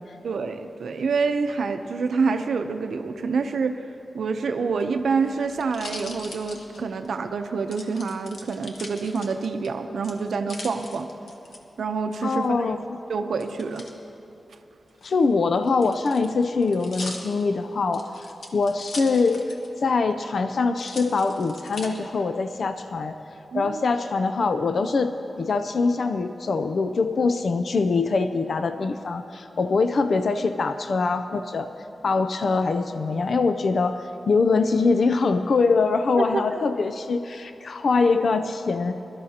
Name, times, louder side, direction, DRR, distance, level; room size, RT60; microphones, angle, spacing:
voice 1, 0.2-3.8 4.1-11.1 11.8-12.7 13.1-13.9 23.5-23.9 36.2-36.6, right 4 dB, 90° right, 7 dB, 0.7 m, -27 dB
sound 1, 4.7-7.2 7.7-9.7 10.0-11.6 13.4-13.9 14.9-19.8 20.1-20.2 20.8-21.9 22.5-23.0, left 2 dB, 80° left, 1.3 m, -40 dB
voice 2, 12.2-13.0 15.0-18.3 18.5-19.5 19.8-23.2 23.5-25.1 25.4-31.7 32.0-39.0, left 4 dB, 60° left, 9 dB, 0.4 m, -23 dB
22.5 x 13.0 x 2.9 m, 2.9 s
wide cardioid pair, 135°, 0 cm